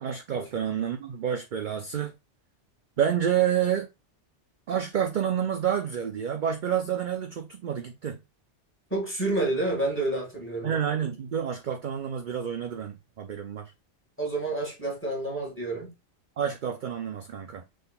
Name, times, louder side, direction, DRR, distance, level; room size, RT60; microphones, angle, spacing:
voice 1, 0.0-2.1 3.0-3.9 4.7-8.2 10.6-13.7 16.4-17.6, right 9 dB, 55° right, 0.6 m, -29 dB
voice 2, 8.9-10.7 14.2-15.9, right 2 dB, 10° left, 1.9 m, -29 dB
6.1 x 3.7 x 2.3 m
omnidirectional pair, 1.2 m